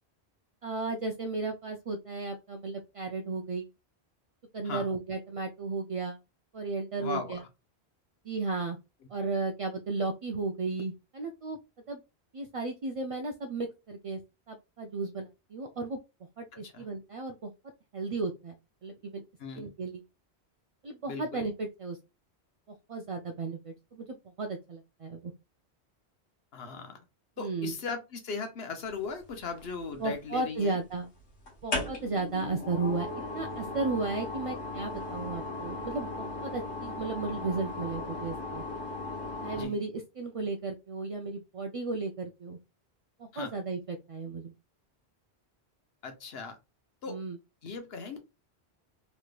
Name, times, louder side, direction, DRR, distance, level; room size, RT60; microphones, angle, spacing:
voice 1, 0.6-3.7 4.5-6.2 6.5-7.4 8.2-8.8 9.1-11.6 11.9-12.0 12.3-14.2 14.5-16.0 16.4-17.5 17.9-19.2 19.6-20.0 20.8-22.0 22.9-25.3 27.4-27.7 30.0-31.1 31.6-33.1 33.3-38.7 39.4-42.6 43.2-44.5 47.1-47.4, right 3 dB, 55° right, 4 dB, 0.3 m, -34 dB
voice 2, 7.0-7.4 16.5-16.9 19.4-19.7 21.1-21.4 26.5-27.0 27.4-30.8 39.5-39.7 43.3-43.5 46.0-46.6 47.0-47.2 47.6-48.2, left 4 dB, 65° left, 6 dB, 1.1 m, -38 dB
sound 1, 29.3-30.1 31.5-39.7, left 2 dB, 85° left, 1.6 m, -37 dB
3.3 x 3.0 x 2.3 m, 0.25 s
omnidirectional pair, 1.1 m